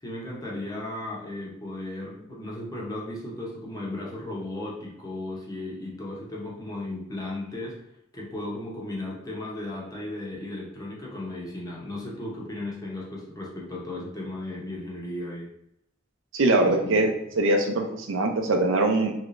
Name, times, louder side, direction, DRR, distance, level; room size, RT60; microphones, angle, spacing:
voice 1, 0.0-7.8 8.1-15.5 16.6-17.0, left 1 dB, 20° left, -3 dB, 0.8 m, -35 dB
voice 2, 16.3-17.1 17.4-19.1, right 2 dB, 80° right, 3 dB, 0.6 m, -22 dB
3.2 x 3.1 x 2.5 m, 0.80 s
head